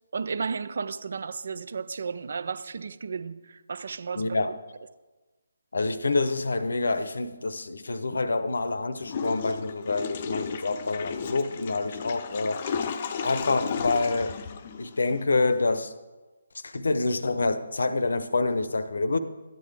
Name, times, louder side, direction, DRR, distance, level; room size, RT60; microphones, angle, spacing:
voice 1, 0.1-4.3, right 5 dB, 55° right, 0.6 m, -33 dB
voice 2, 4.2-4.6 5.7-12.8 13.2-14.4 14.8-15.9 16.5-19.2, left 3 dB, 65° left, 0.8 m, -27 dB
Water / Toilet flush, 9.0-15.2, left 6 dB, 35° left, 0.6 m, -34 dB
12.5 x 9.2 x 3.4 m
figure-of-eight pair, 150°, 0 cm